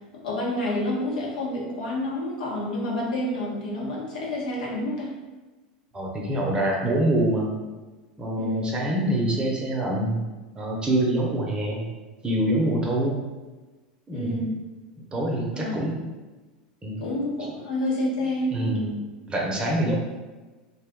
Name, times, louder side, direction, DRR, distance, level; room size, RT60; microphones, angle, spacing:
voice 1, 0.1-5.1 8.4-8.7 14.1-14.6 15.5-15.8 17.0-19.0, left 1 dB, 75° left, -4 dB, 1.0 m, -29 dB
voice 2, 5.9-7.5 8.2-10.2 10.6-11.9 12.2-13.2 14.1-14.4 15.1-16.0 16.8-17.1 18.5-18.8 19.3-19.9, right 1 dB, 20° right, -2 dB, 0.7 m, -25 dB
2.5 x 2.3 x 3.5 m, 1.2 s
hypercardioid pair, 95°, 4 cm